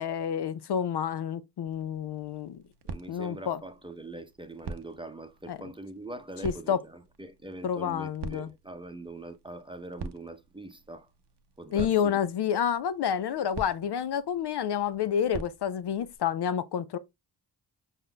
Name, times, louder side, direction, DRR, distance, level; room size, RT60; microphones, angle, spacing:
voice 1, 0.0-2.6 3.1-3.6 5.5-5.6 6.4-6.8 7.6-8.5 11.7-17.0, left 8 dB, 55° left, 0.5 m, -29 dB
sound 1, 1.7-16.2, right 4 dB, 55° right, 0.8 m, -46 dB
voice 2, 2.9-11.1 11.6-12.2, right 2 dB, 10° right, 0.7 m, -43 dB
5.0 x 4.0 x 2.2 m
supercardioid pair, 45°, 48 cm